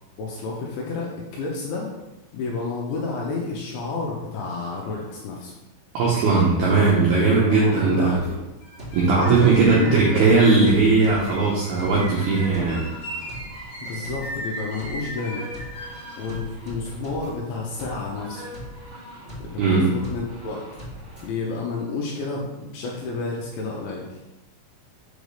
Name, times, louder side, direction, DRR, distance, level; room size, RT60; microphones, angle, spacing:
voice 1, 0.2-1.9 2.3-5.5 7.4-8.4 9.2-10.3 13.8-15.5 16.2-18.4 19.4-20.6 21.2-24.2, left 3 dB, 80° left, -2 dB, 2.8 m, -30 dB
voice 2, 5.9-8.1 8.9-12.8 19.6-19.9, right 4 dB, 80° right, -6 dB, 2.2 m, -18 dB
sound 1, 8.1-21.3, equal, 45° right, 0.9 m, -40 dB
sound 2, 8.6-16.4, equal, 60° left, 2.3 m, -37 dB
7.1 x 5.3 x 3.3 m, 1.0 s
omnidirectional pair, 6.0 m